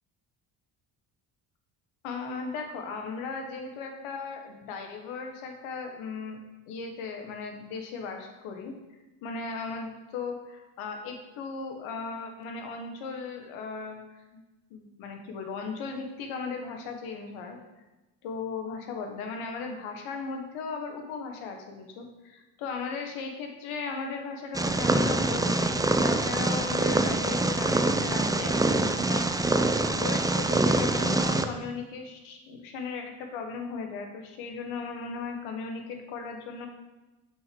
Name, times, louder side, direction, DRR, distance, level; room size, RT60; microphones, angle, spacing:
voice 1, 2.0-6.4 6.7-8.7 9.2-14.0 14.3-14.4 14.7-17.6 18.2-29.3 30.0-36.7, left 4 dB, 80° left, 3 dB, 1.5 m, -37 dB
Purr, 24.5-31.4, right 2 dB, 10° right, 0.5 m, -25 dB
6.5 x 6.3 x 5.3 m, 1.1 s
supercardioid pair, 70°, 48 cm